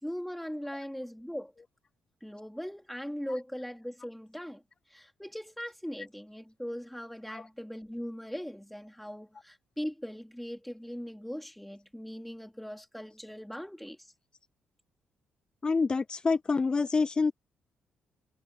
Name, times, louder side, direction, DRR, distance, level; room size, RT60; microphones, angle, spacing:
voice 1, 0.0-1.5 2.2-4.6 4.9-14.1, equal, ahead, 3.4 m, -40 dB
voice 2, 15.6-17.3, left 4 dB, 25° left, 0.3 m, -27 dB
cardioid pair, 90°, 3 cm